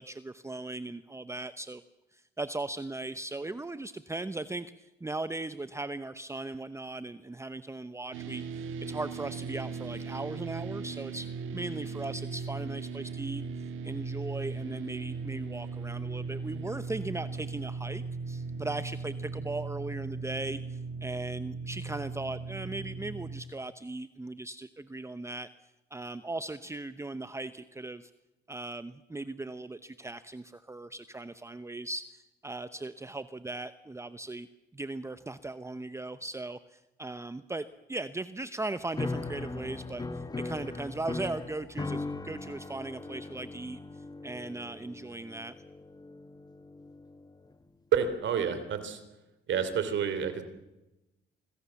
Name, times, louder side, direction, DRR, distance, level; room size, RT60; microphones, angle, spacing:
voice 1, 0.0-1.8 2.1-25.5 25.9-28.1 28.5-34.5 34.7-45.5, right 2 dB, 15° right, 12 dB, 0.8 m, -38 dB
sound 1, 8.1-23.4, right 4 dB, 85° right, 1.7 m, -38 dB
sound 2, 38.9-47.3, left 3 dB, 20° left, 1.2 m, -39 dB
voice 2, 47.9-49.0 49.5-50.4, right 7 dB, 70° right, 10 dB, 3.2 m, -29 dB
25.5 x 20.5 x 7.1 m, 0.97 s
cardioid pair, 90°, 20 cm